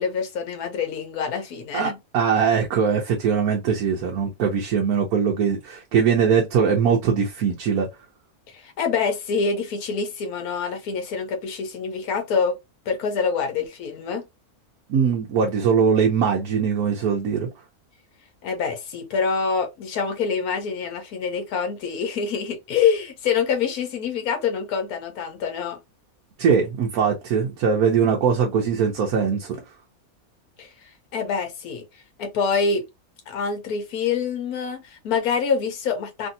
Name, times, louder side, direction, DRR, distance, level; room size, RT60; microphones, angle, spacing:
voice 1, 0.0-1.9 8.5-12.6 12.9-14.3 18.4-25.8 30.6-30.7 31.1-31.9 32.2-32.8 33.3-36.3, left 5 dB, 80° left, 1.3 m, -26 dB
voice 2, 1.7-7.9 14.9-17.5 26.4-29.6, right 6 dB, 85° right, 1.2 m, -21 dB
3.1 x 2.6 x 2.6 m
omnidirectional pair, 1.5 m